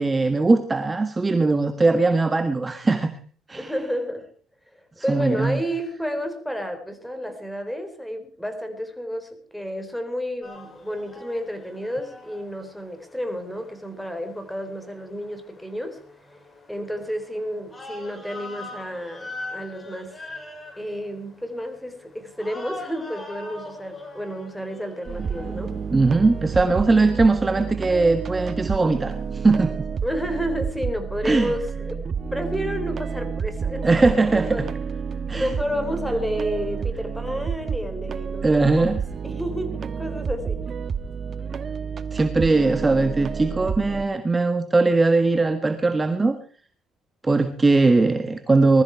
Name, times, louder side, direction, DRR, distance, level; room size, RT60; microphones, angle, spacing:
voice 1, 0.0-3.1 3.5-3.7 5.1-5.6 25.9-29.7 31.2-31.5 33.8-34.6 35.3-35.5 38.4-38.9 42.1-46.4 47.2-48.8, right 3 dB, 20° right, 8 dB, 1.4 m, -20 dB
voice 2, 3.6-4.3 5.0-16.0 16.7-20.2 20.8-25.8 30.0-34.7 35.1-38.9 39.2-40.6, equal, ahead, 8 dB, 4.0 m, -31 dB
sound 1, 10.4-29.6, left 2 dB, 20° left, 5.6 m, -43 dB
sound 2, 25.1-44.1, right 6 dB, 40° right, 1.2 m, -30 dB
20.5 x 14.0 x 4.6 m, 0.42 s
cardioid pair, 115°, 0 cm